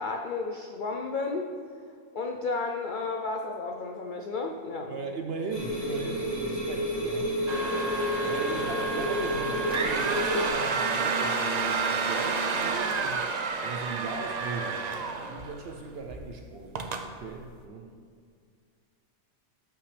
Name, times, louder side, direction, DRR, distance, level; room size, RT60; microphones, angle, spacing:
voice 1, 0.0-1.5 2.1-5.0, left 3 dB, 70° left, 2 dB, 0.4 m, -32 dB
voice 2, 4.9-7.4 8.3-13.3 13.6-17.9, right 4 dB, 55° right, 3 dB, 0.7 m, -38 dB
sound 1, 5.5-10.5, equal, 15° left, 2.1 m, -30 dB
sound 2, 7.5-15.7 16.1-16.3 16.8-17.1, right 4 dB, 75° right, 0.3 m, -30 dB
13.0 x 5.8 x 3.3 m, 2.1 s
omnidirectional pair, 1.5 m